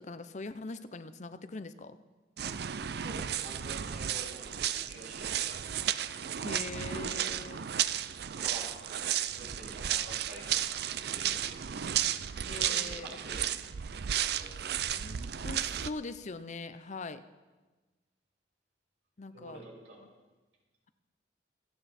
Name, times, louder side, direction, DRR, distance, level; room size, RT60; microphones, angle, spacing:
voice 1, 0.0-2.0 6.4-7.6 12.4-13.2 15.0-17.2 19.2-19.6 20.0-20.1, left 3 dB, 40° left, 12 dB, 0.6 m, -42 dB
sound 1, 2.4-15.9, right 10 dB, 60° right, 0.5 m, -33 dB
voice 2, 2.9-5.6 7.0-7.3 8.4-8.9 9.4-10.7 11.1-11.5 12.5-13.7 14.2-14.8 19.3-20.0, right 1 dB, 80° right, -3 dB, 5.7 m, -48 dB
27.0 x 9.1 x 4.3 m, 1.2 s
head